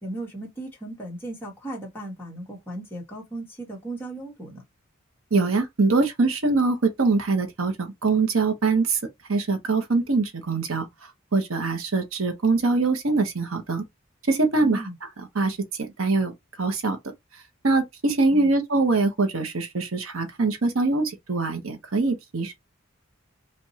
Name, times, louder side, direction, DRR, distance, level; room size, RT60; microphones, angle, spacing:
voice 1, 0.0-4.6 14.6-14.9 18.3-18.5, right 2 dB, 10° left, 1.9 m, -36 dB
voice 2, 5.3-9.0 9.3-10.8 11.3-13.8 14.3-14.8 15.3-15.6 16.0-16.3 16.6-17.0 17.6-22.5, right 3 dB, 85° right, 1.1 m, -23 dB
5.2 x 2.6 x 2.8 m
head